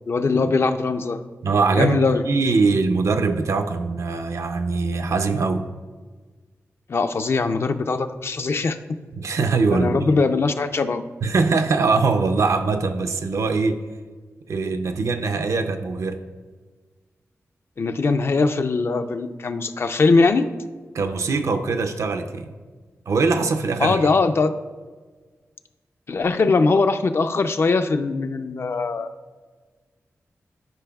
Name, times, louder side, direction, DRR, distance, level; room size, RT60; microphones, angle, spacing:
voice 1, 0.1-1.2 1.8-2.2 6.9-8.8 9.7-11.0 17.8-20.5 23.8-24.5 26.1-29.1, left 4 dB, 50° left, 9 dB, 0.4 m, -21 dB
voice 2, 1.4-5.6 9.1-10.1 11.2-13.8 14.5-16.2 20.9-22.5 23.1-24.0, right 4 dB, 70° right, 8 dB, 0.5 m, -22 dB
12.0 x 5.2 x 2.3 m, 1.4 s
wide cardioid pair, 100°, 5 cm